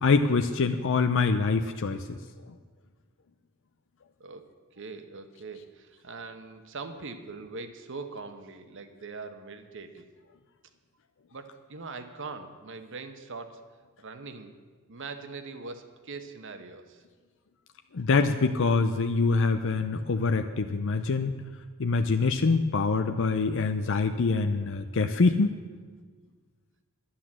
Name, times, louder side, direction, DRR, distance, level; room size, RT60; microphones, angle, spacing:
voice 1, 0.0-2.2 17.9-21.3 21.8-25.5, left 4 dB, 65° left, 8 dB, 0.6 m, -25 dB
voice 2, 4.8-10.1 11.3-13.6 14.0-14.6 14.9-17.0, right 4 dB, 60° right, 8 dB, 1.1 m, -42 dB
11.5 x 10.0 x 7.4 m, 1.5 s
head